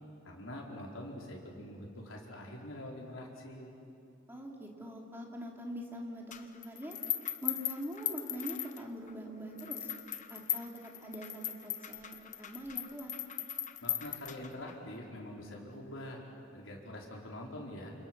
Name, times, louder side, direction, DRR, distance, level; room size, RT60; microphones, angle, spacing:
voice 1, 0.2-3.7 13.8-16.2 16.5-17.9, left 1 dB, 85° left, -2 dB, 4.7 m, -45 dB
voice 2, 4.3-7.0 7.4-9.9 10.3-13.1, equal, 10° right, 0 dB, 3.2 m, -43 dB
sound 1, 6.3-9.1 9.6-14.7, left 10 dB, 40° left, 1.2 m, -38 dB
29.0 x 28.5 x 6.3 m, 2.7 s
head